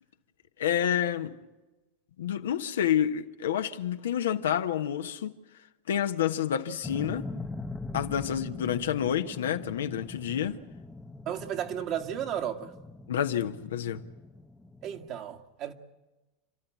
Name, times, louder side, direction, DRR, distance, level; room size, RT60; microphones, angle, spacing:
voice 1, 0.6-1.4 2.2-5.3 5.9-7.3 7.9-10.6 13.1-14.0, left 9 dB, 85° left, 1.1 m, -29 dB
sound 1, 6.8-15.1, left 2 dB, 10° left, 1.0 m, -42 dB
voice 2, 11.3-12.7 14.8-15.7, right 10 dB, 50° right, 1.9 m, -33 dB
29.5 x 12.5 x 9.3 m
hypercardioid pair, 100°, 0 cm